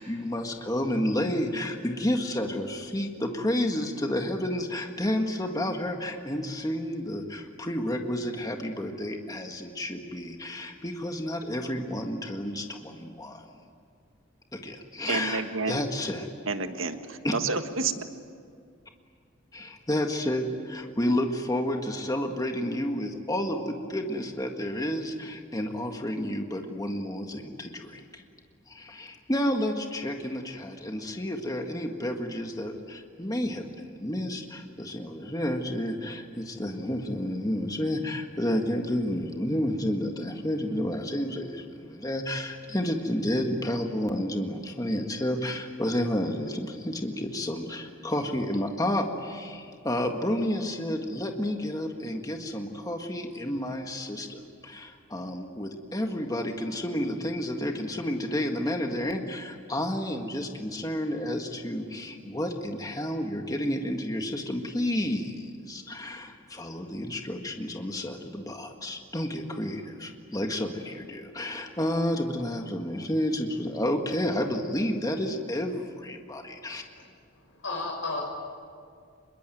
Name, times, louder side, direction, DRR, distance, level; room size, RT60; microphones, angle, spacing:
voice 1, 0.0-13.4 14.5-15.4 15.7-16.3 17.2-17.3 19.5-28.2 28.7-76.8, left 1 dB, 20° left, 4 dB, 1.7 m, -30 dB
voice 2, 15.1-15.8 16.5-17.9, right 4 dB, 90° right, 8 dB, 1.6 m, -29 dB
voice 3, 77.3-78.2, left 3 dB, 70° left, 1 dB, 6.5 m, -34 dB
25.5 x 22.5 x 9.2 m, 2.2 s
head